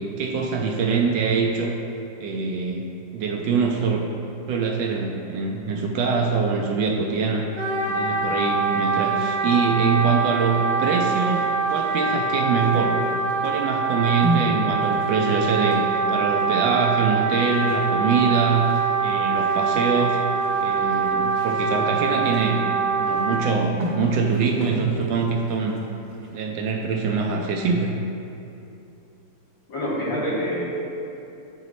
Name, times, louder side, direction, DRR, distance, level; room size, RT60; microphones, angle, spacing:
voice 1, 0.0-1.7 2.2-4.1 4.5-7.5 7.8-13.0 13.4-20.2 20.6-22.7 23.0-25.8 26.3-27.9, right 5 dB, 75° right, 1 dB, 1.2 m, -24 dB
Wind instrument woodwind instrument, 7.5-23.4, right 4 dB, 5° left, 1.2 m, -24 dB
sound 1, 11.1-26.5, right 1 dB, 45° right, 1.5 m, -36 dB
voice 2, 29.7-30.7, equal, 80° left, -8 dB, 2.4 m, -26 dB
10.0 x 3.9 x 3.1 m, 2.8 s
omnidirectional pair, 2.1 m